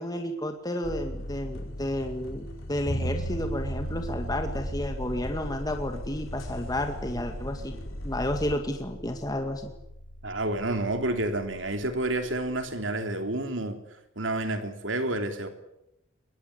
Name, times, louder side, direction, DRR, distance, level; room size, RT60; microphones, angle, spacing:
voice 1, 0.0-7.8 8.0-9.7, left 1 dB, 20° left, 2.1 m, -31 dB
sound 1, 0.8-8.6, left 1 dB, 85° left, 3.5 m, -39 dB
Bass guitar, 2.9-12.7, right 1 dB, 65° left, 6.7 m, -39 dB
voice 2, 10.2-13.8 14.1-15.5, right 2 dB, 70° right, 3.2 m, -29 dB
23.0 x 20.5 x 9.8 m
head